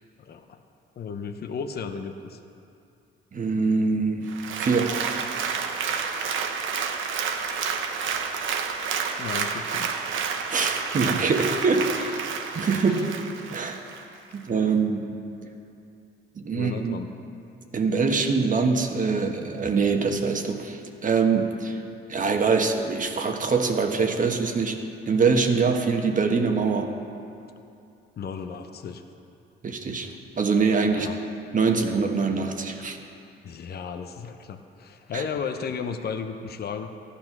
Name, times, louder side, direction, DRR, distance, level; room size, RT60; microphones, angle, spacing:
voice 1, 0.2-0.6 1.0-2.4 9.2-10.1 12.0-12.2 12.9-13.1 16.5-17.1 28.2-29.0 30.9-31.2 33.4-36.9, left 6 dB, 55° left, 6 dB, 0.8 m, -34 dB
voice 2, 3.3-4.3 4.6-5.0 10.5-11.9 12.5-13.1 13.5-13.8 14.3-15.1 16.4-17.0 17.7-21.8 22.1-24.8 25.1-26.9 29.6-30.1 30.4-31.1 31.5-33.0 35.1-35.2, right 4 dB, 40° right, 4 dB, 1.3 m, -24 dB
Applause, 4.3-14.0 14.5-14.6, right 6 dB, 80° right, 1.0 m, -29 dB
14.5 x 10.0 x 6.0 m, 2.6 s
cardioid pair, 90°, 20 cm